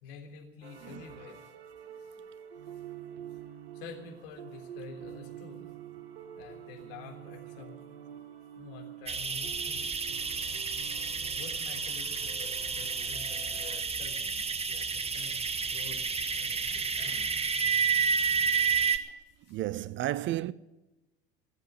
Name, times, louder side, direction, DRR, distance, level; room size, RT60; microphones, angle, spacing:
voice 1, 0.0-1.5 2.0-2.1 3.7-5.6 6.3-7.8 8.5-10.1 11.1-16.0 16.3-17.3 18.4-19.1 19.5-19.6, left 5 dB, 65° left, 3.5 m, -49 dB
sound 1, 0.6-13.8, right 10 dB, 75° right, 1.3 m, -47 dB
voice 2, 0.8-1.2 19.5-20.5, right 14 dB, 40° right, 0.5 m, -33 dB
sound 2, 9.1-19.0, right 5 dB, 20° right, 1.3 m, -30 dB
18.5 x 7.7 x 9.8 m
figure-of-eight pair, 70°, 30 cm